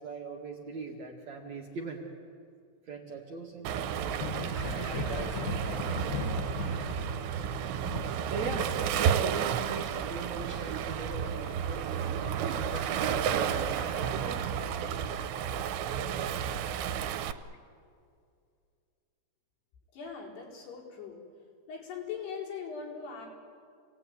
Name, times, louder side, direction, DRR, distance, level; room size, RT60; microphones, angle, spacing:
voice 1, 0.0-2.0 2.9-7.5 8.3-12.0 12.6-15.7, right 4 dB, 50° right, 0 dB, 2.8 m, -42 dB
Waves surf, 3.6-17.3, right 8 dB, 85° right, 3.1 m, -32 dB
Thunder, 4.0-13.4 13.7-15.0 16.5-16.6 17.4-17.6, left 6 dB, 90° left, 4.1 m, -40 dB
Dog, 4.5-15.2, right 2 dB, 15° right, 7.5 m, -48 dB
voice 2, 19.9-21.3 21.7-23.3, left 6 dB, 70° left, -3 dB, 6.4 m, -40 dB
28.5 x 19.0 x 9.5 m, 2.3 s
omnidirectional pair, 5.0 m